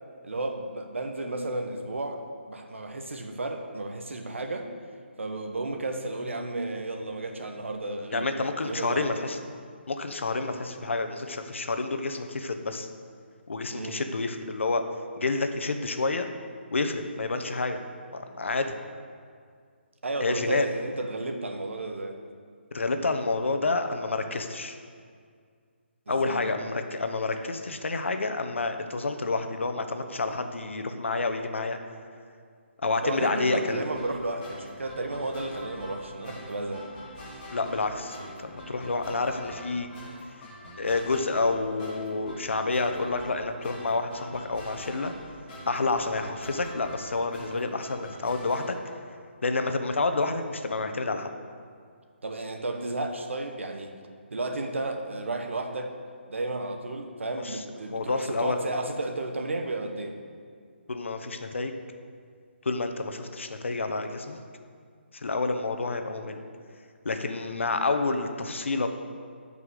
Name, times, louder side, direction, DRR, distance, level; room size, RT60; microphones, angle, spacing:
voice 1, 0.2-4.7 5.2-8.3 8.6-9.1 13.7-14.0 20.0-22.2 26.2-26.6 33.0-36.9 52.2-53.9 54.3-56.0 56.3-60.2, right 2 dB, 85° right, 5 dB, 1.4 m, -33 dB
voice 2, 8.1-9.4 9.9-12.9 13.5-14.8 15.2-16.3 16.7-17.8 18.1-18.7 20.2-20.7 22.7-24.8 26.1-31.8 32.8-33.8 37.5-38.2 38.4-39.9 40.8-45.1 45.7-48.7 49.4-51.3 57.4-58.7 60.9-61.8 62.6-64.4 65.1-66.4 67.0-68.9, left 3 dB, 80° left, 7 dB, 1.1 m, -29 dB
sound 1, 33.9-48.7, left 1 dB, 25° left, 2.9 m, -44 dB
11.0 x 5.5 x 6.6 m, 2.1 s
hypercardioid pair, 165°, 7 cm